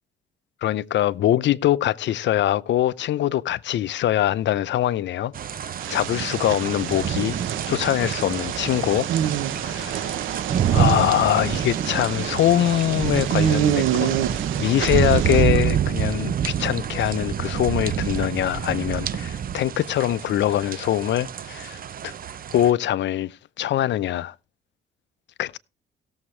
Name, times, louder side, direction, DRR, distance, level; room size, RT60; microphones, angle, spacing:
voice 1, 0.6-7.4 7.7-9.1 9.6-10.2 10.7-22.1 22.5-24.3 25.4-25.6, left 12 dB, 65° left, 0.6 m, -23 dB
sound 1, 5.3-22.7, right 9 dB, 45° right, 0.6 m, -27 dB
sound 2, 5.8-15.4, right 11 dB, 85° right, 0.8 m, -28 dB
17.5 x 7.2 x 3.2 m
cardioid pair, 90°, 20 cm